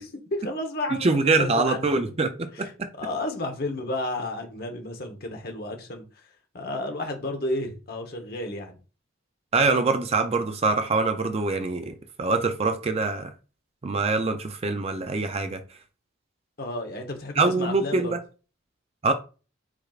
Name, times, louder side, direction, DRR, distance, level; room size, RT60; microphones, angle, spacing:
voice 1, 0.3-2.1 2.5-6.3 6.5-8.8 16.6-18.1, left 1 dB, 50° left, 1.0 m, -32 dB
voice 2, 0.9-2.9 9.5-13.3 13.8-15.6 17.4-18.2 19.0-19.1, right 3 dB, 30° right, 0.4 m, -24 dB
4.8 x 4.5 x 2.4 m
head